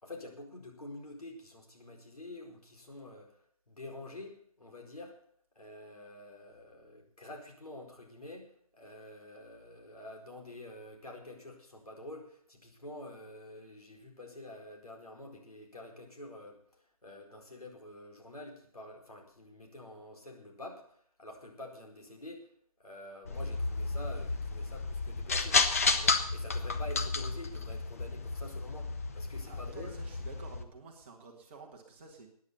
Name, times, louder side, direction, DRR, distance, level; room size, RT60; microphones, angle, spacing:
voice 1, 0.0-3.4 3.7-5.2 5.5-22.5 22.8-25.6 25.9-29.9, left 1 dB, 75° left, 1 dB, 4.5 m, -48 dB
sound 1, 23.2-30.6, left 4 dB, 25° left, 0.7 m, -32 dB
voice 2, 29.5-32.3, right 4 dB, 20° right, 0 dB, 1.7 m, -51 dB
14.5 x 9.7 x 6.9 m, 0.65 s
figure-of-eight pair, 160°, 19 cm